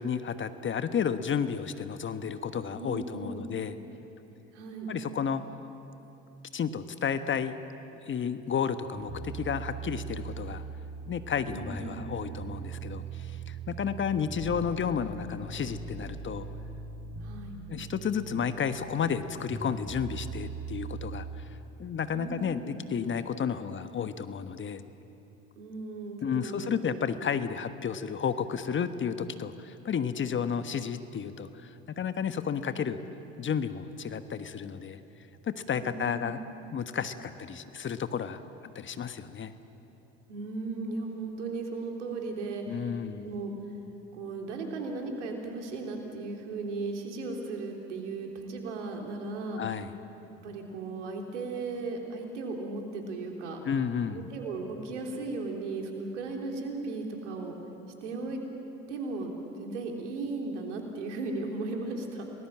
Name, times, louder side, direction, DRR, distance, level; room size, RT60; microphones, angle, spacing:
voice 1, 0.0-3.7 4.9-5.4 6.5-7.6 8.1-10.6 11.1-16.5 17.7-21.5 21.8-24.8 26.2-33.0 33.4-35.0 35.4-36.4 36.7-38.4 38.7-39.5 42.7-43.3 49.6-49.9 53.6-54.2, left 7 dB, 35° left, 10 dB, 1.3 m, -32 dB
voice 2, 2.7-3.5 4.5-4.9 11.5-12.0 17.2-17.6 22.1-22.7 25.6-27.1 35.7-36.4 40.3-42.9 43.2-43.5 44.1-49.6 50.4-53.6 54.1-57.5 58.0-58.4 58.9-62.3, right 3 dB, 80° right, 2 dB, 3.4 m, -36 dB
sound 1, 8.9-21.4, right 5 dB, 40° right, 4.4 m, -40 dB
30.0 x 20.0 x 7.6 m, 2.9 s
hypercardioid pair, 70°, 35 cm